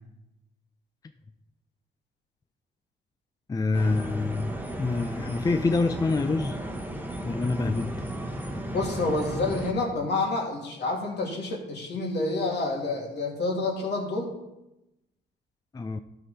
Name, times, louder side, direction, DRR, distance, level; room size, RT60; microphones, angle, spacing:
voice 1, 3.5-6.6 7.2-8.0 15.7-16.0, left 3 dB, 20° left, 8 dB, 0.4 m, -26 dB
sound 1, 3.7-9.7, right 1 dB, 10° right, 1.3 m, -34 dB
voice 2, 8.7-14.3, left 2 dB, 60° left, 0 dB, 2.8 m, -28 dB
12.5 x 6.0 x 4.3 m, 0.92 s
cardioid pair, 90°, 20 cm